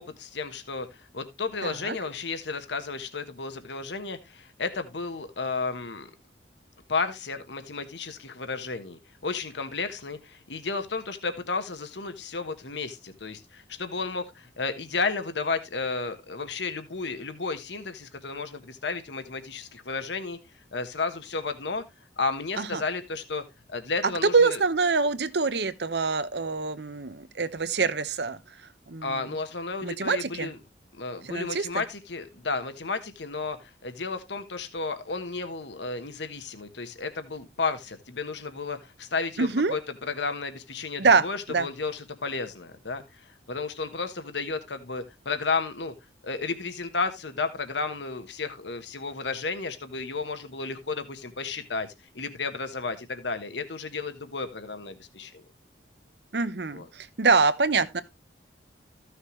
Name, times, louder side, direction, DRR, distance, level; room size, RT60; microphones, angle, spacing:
voice 1, 0.0-6.1 6.9-20.4 20.7-21.8 22.2-23.4 23.7-24.6 29.0-30.6 30.9-39.8 40.1-45.9 46.2-51.9 52.1-55.4 56.7-56.9, left 4 dB, 80° left, 1.3 m, -33 dB
voice 2, 1.6-1.9 22.6-22.8 24.0-28.4 28.9-29.3 29.8-30.5 31.2-31.7 39.4-39.7 41.0-41.7 56.3-58.0, right 4 dB, 70° right, 0.9 m, -25 dB
14.5 x 6.5 x 3.1 m
head